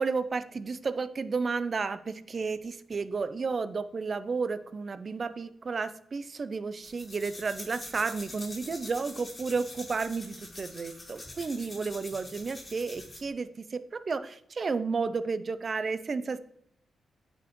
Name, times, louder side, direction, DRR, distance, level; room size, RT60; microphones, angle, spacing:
voice 1, 0.0-16.4, right 4 dB, 45° right, 13 dB, 0.4 m, -32 dB
sound 1, 6.8-13.3, left 2 dB, 25° left, 2.0 m, -45 dB
8.9 x 4.3 x 3.0 m, 0.72 s
cardioid pair, 75°, 0 cm